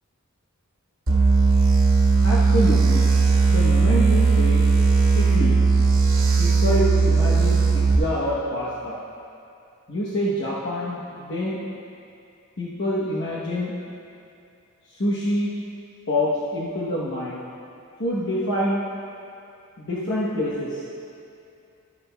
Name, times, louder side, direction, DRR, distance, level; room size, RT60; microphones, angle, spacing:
sound 1, 1.1-8.0, right 4 dB, 65° right, 1.4 m, -18 dB
voice 1, 2.2-3.1 3.5-4.6 5.2-5.6 6.4-9.0 9.9-11.6 12.6-13.7 14.9-15.5 16.1-17.4 18.0-18.9 19.8-20.8, left 1 dB, 55° left, -7 dB, 0.9 m, -26 dB
12.0 x 10.0 x 2.2 m, 2.6 s
head